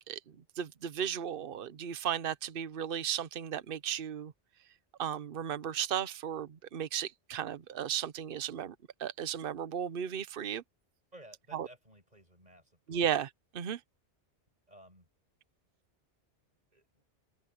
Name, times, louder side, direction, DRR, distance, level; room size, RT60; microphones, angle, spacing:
voice 1, 0.6-4.3 5.0-8.7 9.0-10.6 11.5-11.7 12.9-13.3 13.5-13.8, right 9 dB, 55° right, 1.0 m, -35 dB
voice 2, 11.1-13.1 14.7-15.1 16.7-17.0, right 1 dB, 35° right, 8.1 m, -56 dB
open air
omnidirectional pair, 1.2 m